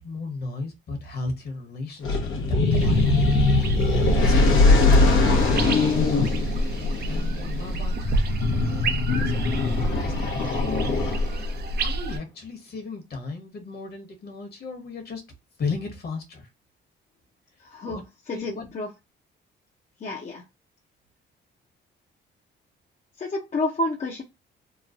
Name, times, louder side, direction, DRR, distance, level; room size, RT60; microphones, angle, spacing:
voice 1, 0.0-2.5 2.7-3.1 3.9-5.3 6.3-6.7 7.1-8.3 8.6-11.4 11.8-15.2 15.6-16.5 17.9-18.0 18.3-18.7, left 3 dB, 55° left, 1.3 m, -36 dB
sound 1, 2.0-11.5, left 3 dB, 80° left, 1.0 m, -22 dB
sound 2, 2.7-12.2, right 1 dB, 55° right, 0.6 m, -28 dB
voice 2, 17.6-18.9 20.0-20.4 23.2-24.2, left 2 dB, 35° left, 0.7 m, -30 dB
3.0 x 2.2 x 2.5 m
cardioid pair, 90°, 20 cm